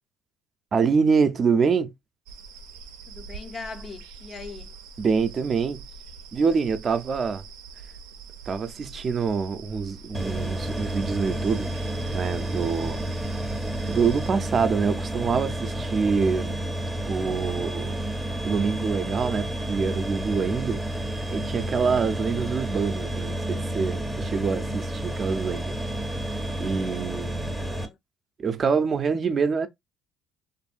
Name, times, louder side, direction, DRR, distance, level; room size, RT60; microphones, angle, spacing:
voice 1, 0.7-1.9 5.0-5.8 6.3-7.4 8.5-11.7 12.1-13.0 13.8-16.6 17.1-18.0 18.4-21.0 21.3-25.7 26.6-27.6 28.4-29.7, right 5 dB, 40° right, 0.5 m, -25 dB
sound 1, 2.3-14.3, right 4 dB, 90° right, 0.5 m, -44 dB
voice 2, 3.1-4.7 27.5-28.0, left 4 dB, 45° left, 0.6 m, -40 dB
sound 2, 10.1-27.9, right 1 dB, ahead, 0.6 m, -30 dB
2.7 x 2.5 x 2.4 m
supercardioid pair, 80°, 0 cm